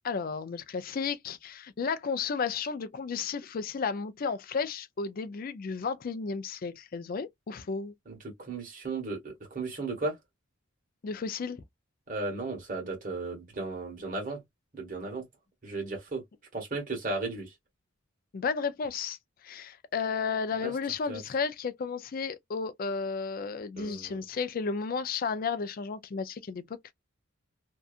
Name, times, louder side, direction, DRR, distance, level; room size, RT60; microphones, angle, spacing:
voice 1, 0.0-7.9 11.0-11.6 18.3-19.2 19.4-26.9, left 5 dB, 40° left, 0.4 m, -33 dB
voice 2, 8.1-10.1 12.1-14.4 14.7-15.2 15.6-16.2 16.5-17.5 20.6-20.7 21.1-21.2 23.8-24.2, right 3 dB, 40° right, 1.3 m, -35 dB
2.7 x 2.3 x 2.4 m
head